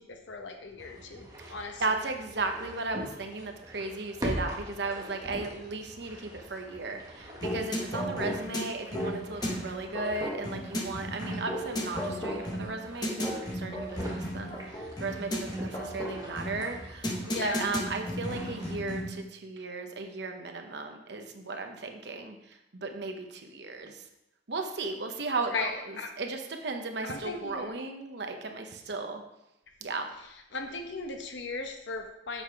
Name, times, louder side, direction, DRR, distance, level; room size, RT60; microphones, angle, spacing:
voice 1, 0.0-2.0 17.2-17.8 25.4-26.1 27.0-27.7 30.5-32.4, left 3 dB, 75° left, 4 dB, 1.0 m, -37 dB
sound 1, 0.8-18.8, equal, 20° right, 1.3 m, -43 dB
voice 2, 1.8-24.0 24.5-29.2 29.8-30.1, right 3 dB, 60° right, 5 dB, 0.9 m, -36 dB
sound 2, 7.4-19.2, equal, 20° left, 1.0 m, -34 dB
7.1 x 5.6 x 4.7 m, 0.87 s
head